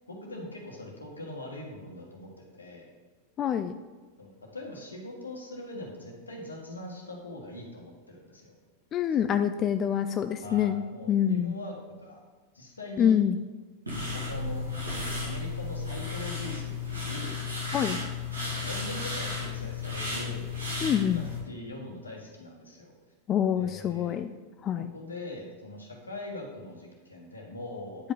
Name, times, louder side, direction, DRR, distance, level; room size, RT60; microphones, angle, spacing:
voice 1, 0.1-2.9 4.2-8.5 9.2-9.3 10.4-12.2 12.5-13.2 14.1-14.7 15.2-17.4 18.4-20.5 21.1-22.9 23.5-24.2 24.8-28.1, left 2 dB, 80° left, 0 dB, 1.6 m, -42 dB
voice 2, 3.4-3.7 8.9-10.8 11.1-11.5 13.0-13.4 17.7-18.0 20.8-21.2 23.3-24.3 24.6-24.9, left 9 dB, 30° left, 9 dB, 0.3 m, -26 dB
sound 1, 13.9-21.4, left 4 dB, 80° right, 2.2 m, -34 dB
9.2 x 5.2 x 3.9 m, 1.4 s
figure-of-eight pair, 90°, 0 cm